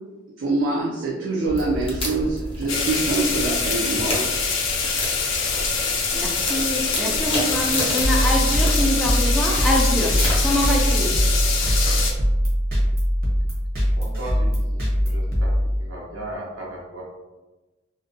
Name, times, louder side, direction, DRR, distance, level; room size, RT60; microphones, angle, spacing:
voice 1, 0.4-4.3, right 3 dB, 70° right, -3 dB, 0.4 m, -25 dB
sound 1, 1.5-12.2, left 1 dB, 30° left, 0.7 m, -31 dB
sound 2, 2.7-12.1, left 4 dB, 75° left, 0.4 m, -24 dB
voice 2, 6.1-10.1 10.4-11.1, equal, ahead, -3 dB, 0.3 m, -25 dB
sound 3, 8.0-16.2, equal, 50° right, 0.8 m, -22 dB
voice 3, 14.0-15.5 15.8-17.0, right 1 dB, 90° right, -4 dB, 0.9 m, -36 dB
2.5 x 2.1 x 2.6 m, 1.1 s
head